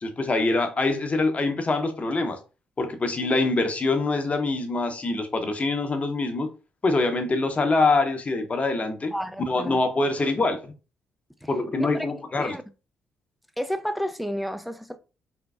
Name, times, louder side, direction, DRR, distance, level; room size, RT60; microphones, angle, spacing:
voice 1, 0.0-2.4 2.8-6.5 6.8-9.1 9.4-10.7 11.5-12.6, left 3 dB, 35° left, 0.9 m, -24 dB
voice 2, 9.1-9.8 11.4-11.5 11.8-12.1 12.3-12.6 13.6-15.0, equal, ahead, 0.5 m, -31 dB
3.8 x 3.5 x 2.3 m
hypercardioid pair, 40°, 4 cm